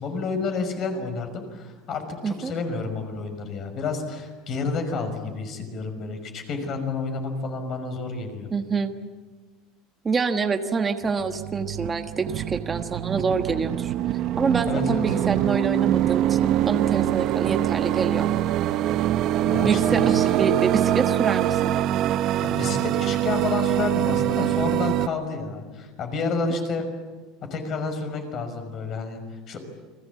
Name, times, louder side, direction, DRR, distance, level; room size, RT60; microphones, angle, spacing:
voice 1, 0.0-8.5 14.7-15.2 19.4-20.3 22.4-26.9 27.5-29.6, left 4 dB, 35° left, 6 dB, 5.9 m, -30 dB
voice 2, 8.5-8.9 10.0-13.9 14.4-18.3 19.6-21.7 26.5-26.7, right 5 dB, 20° right, 6 dB, 1.3 m, -26 dB
sound 1, 11.0-25.1, right 13 dB, 45° right, 0.8 m, -24 dB
30.0 x 22.5 x 8.5 m, 1.3 s
cardioid pair, 155°, 0 cm